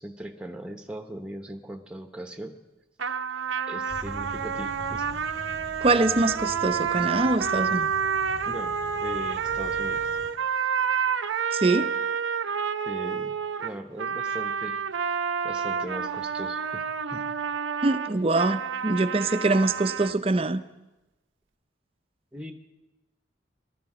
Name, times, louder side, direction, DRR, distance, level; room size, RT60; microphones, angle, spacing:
voice 1, 0.0-2.5 3.7-5.1 8.5-10.0 12.8-14.8 15.4-16.8 17.1-17.2 22.3-22.5, right 1 dB, 5° right, 6 dB, 0.9 m, -39 dB
sound 1, 3.0-20.2, right 6 dB, 85° right, 0.6 m, -29 dB
sound 2, 3.9-10.3, equal, 30° left, 3.9 m, -44 dB
voice 2, 5.8-7.9 11.5-11.9 17.8-20.6, right 2 dB, 30° right, 11 dB, 0.5 m, -24 dB
18.0 x 12.5 x 5.0 m, 1.0 s
head